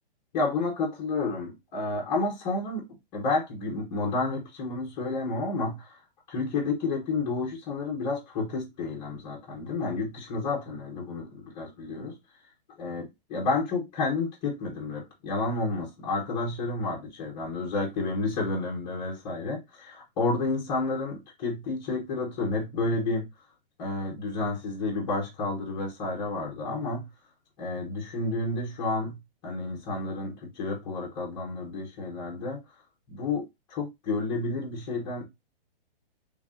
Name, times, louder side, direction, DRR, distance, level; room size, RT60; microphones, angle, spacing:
voice 1, 0.3-6.0 6.3-12.1 12.8-23.3 23.8-27.1 27.6-29.2 29.4-32.6 33.1-35.2, left 3 dB, 15° left, 0.7 m, -30 dB
3.2 x 2.6 x 3.5 m
hypercardioid pair, 170°, 29 cm